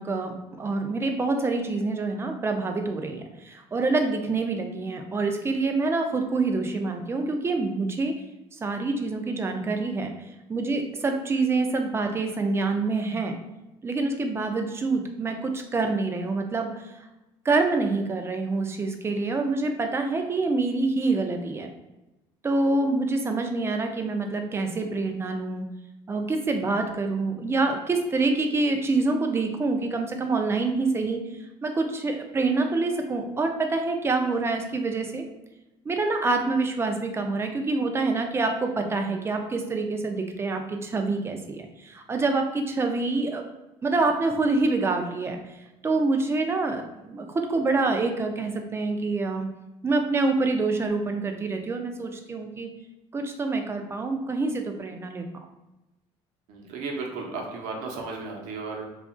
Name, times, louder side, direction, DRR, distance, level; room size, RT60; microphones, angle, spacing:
voice 1, 0.0-8.1 8.6-13.3 13.8-17.1 17.4-21.7 22.4-25.6 26.1-31.2 31.6-35.2 35.9-43.5 43.8-45.4 45.8-49.5 49.8-52.7 53.1-55.2, right 3 dB, 20° right, 4 dB, 0.4 m, -26 dB
voice 2, 56.5-58.9, right 3 dB, 75° right, 0 dB, 0.7 m, -34 dB
2.7 x 2.4 x 2.5 m, 0.98 s
cardioid pair, 105°, 12 cm